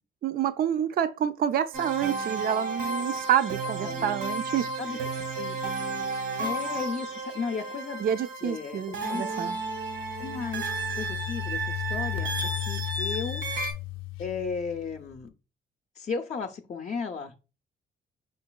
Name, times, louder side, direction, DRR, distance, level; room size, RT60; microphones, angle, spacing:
voice 1, 0.2-4.7 8.0-9.6, right 9 dB, 50° right, 0.4 m, -28 dB
sound 1, 1.7-13.7, right 3 dB, 80° right, 1.5 m, -33 dB
voice 2, 3.8-4.2 4.8-5.0 5.3-5.6 6.4-8.1 8.4-9.2 10.2-12.3 12.7-13.4 14.2-15.3 15.9-17.3, left 5 dB, 35° left, 0.5 m, -35 dB
sound 2, 9.5-15.2, left 17 dB, 90° left, 0.5 m, -36 dB
5.5 x 3.8 x 2.2 m
cardioid pair, 90°, 20 cm